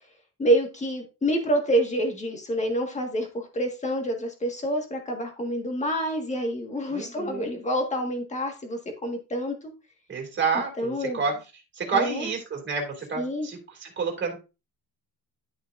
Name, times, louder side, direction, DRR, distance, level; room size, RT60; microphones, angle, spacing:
voice 1, 0.4-9.7 10.8-11.2 11.9-12.3 13.2-13.5, right 1 dB, 15° left, 3 dB, 1.7 m, -27 dB
voice 2, 6.9-7.5 10.1-11.3 11.7-14.4, right 5 dB, 25° right, 1 dB, 2.5 m, -29 dB
11.0 x 6.3 x 2.6 m, 0.30 s
cardioid pair, 170°, 40 cm